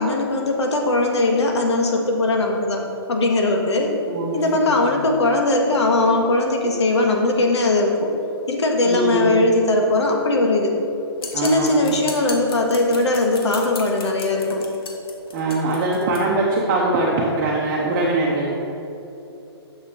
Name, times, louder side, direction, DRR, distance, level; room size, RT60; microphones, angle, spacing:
voice 1, 0.0-2.8 3.1-4.0 4.3-8.1 8.5-10.7 11.3-14.7, left 2 dB, 85° left, 2 dB, 1.6 m, -19 dB
voice 2, 8.9-9.3 11.3-11.9 15.3-18.6, right 2 dB, 25° right, -5 dB, 0.9 m, -22 dB
sound 1, 11.2-16.2, left 4 dB, 60° left, 1.4 m, -36 dB
9.5 x 6.6 x 5.0 m, 2.9 s
hypercardioid pair, 170°, 14 cm